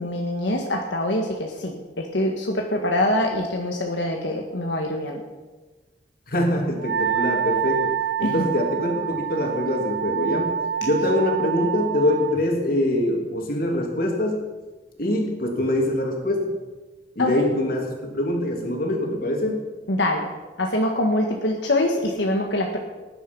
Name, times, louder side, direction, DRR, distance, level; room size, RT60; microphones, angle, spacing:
voice 1, 0.0-5.2 8.2-8.4 17.2-17.4 19.9-20.3 20.6-22.8, left 1 dB, 85° left, 1 dB, 1.7 m, -24 dB
voice 2, 6.3-14.4 15.0-16.5 17.1-19.7, left 1 dB, 55° left, 2 dB, 3.0 m, -24 dB
Wind instrument woodwind instrument, 6.8-12.4, right 9 dB, 65° right, 1.0 m, -27 dB
19.0 x 10.5 x 5.5 m, 1.2 s
head